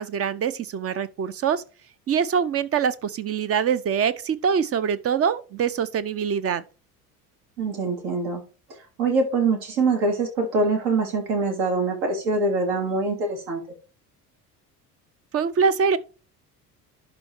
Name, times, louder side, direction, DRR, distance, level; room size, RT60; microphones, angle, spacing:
voice 1, 0.0-1.6 2.1-6.6 15.3-16.0, right 7 dB, 30° right, 0.8 m, -24 dB
voice 2, 7.6-8.4 9.0-13.6, right 3 dB, 55° right, 3.0 m, -24 dB
11.5 x 4.1 x 4.6 m
figure-of-eight pair, 60°, 48 cm